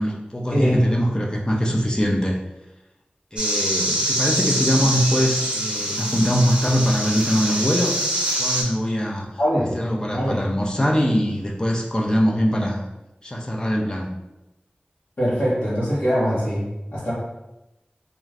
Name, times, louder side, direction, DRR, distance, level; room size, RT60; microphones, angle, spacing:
voice 1, 0.0-2.4 3.3-8.1 8.3-9.3 9.7-12.8 13.2-14.2, equal, 25° left, -1 dB, 0.4 m, -22 dB
voice 2, 0.5-0.8 9.4-9.7 10.1-10.4 15.2-16.6 16.9-17.1, equal, 70° left, -12 dB, 1.0 m, -22 dB
sound 1, 3.4-8.6, right 1 dB, 30° right, 0.8 m, -24 dB
2.4 x 2.4 x 3.3 m, 0.95 s
wide cardioid pair, 50°, 3 cm